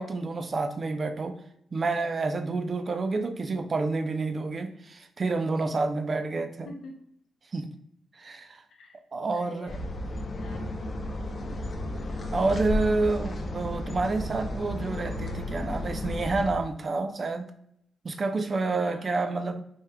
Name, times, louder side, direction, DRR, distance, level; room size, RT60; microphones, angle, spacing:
voice 1, 0.0-1.4 1.7-6.7 7.5-7.7 8.2-8.6 9.1-9.8 12.3-17.5 18.0-19.6, right 3 dB, 30° right, 8 dB, 0.3 m, -29 dB
voice 2, 6.6-7.1 8.7-9.0 9.3-9.8 10.3-10.6 11.2-11.6 12.9-13.1 18.8-19.1, left 3 dB, 60° left, 2 dB, 0.8 m, -47 dB
sound 1, 9.7-16.5, left 1 dB, 30° left, 0.5 m, -33 dB
4.4 x 3.4 x 2.2 m, 0.73 s
wide cardioid pair, 165°, 0 cm